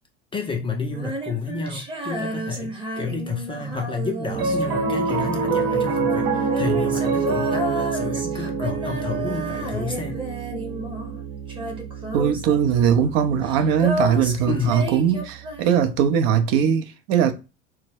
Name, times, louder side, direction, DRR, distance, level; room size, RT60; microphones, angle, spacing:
voice 1, 0.3-10.2 14.5-14.9, left 4 dB, 15° left, 0.4 m, -30 dB
Female singing, 0.9-11.2 11.5-15.9, right 1 dB, 15° right, 0.8 m, -32 dB
Piano, 4.3-14.8, right 5 dB, 65° right, 0.9 m, -27 dB
voice 2, 12.1-17.3, right 8 dB, 45° right, 0.5 m, -20 dB
2.1 x 2.0 x 3.3 m
figure-of-eight pair, 70°, 35 cm